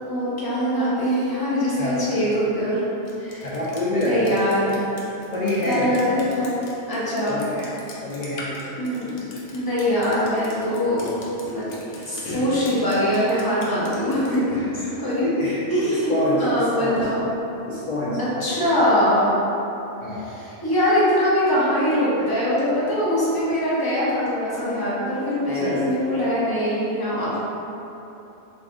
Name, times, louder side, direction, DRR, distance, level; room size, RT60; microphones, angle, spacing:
voice 1, 0.1-2.8 3.2-3.5 4.0-4.8 5.7-6.5 6.9-7.4 8.8-9.2 9.5-11.1 11.4-11.7 12.0-15.3 15.7-17.3 18.2-19.3 20.2-27.4, equal, 20° left, -8 dB, 0.7 m, -22 dB
Drip, 3.1-14.4, left 1 dB, 80° left, 0.9 m, -40 dB
voice 2, 3.4-4.4 5.3-5.9 7.3-7.7 8.0-8.6 14.5-14.9 15.2-17.1 17.7-18.2 20.0-20.3 22.2-22.4 25.5-25.9, left 1 dB, 55° left, -8 dB, 0.4 m, -26 dB
3.3 x 2.5 x 3.6 m, 3.0 s
omnidirectional pair, 1.2 m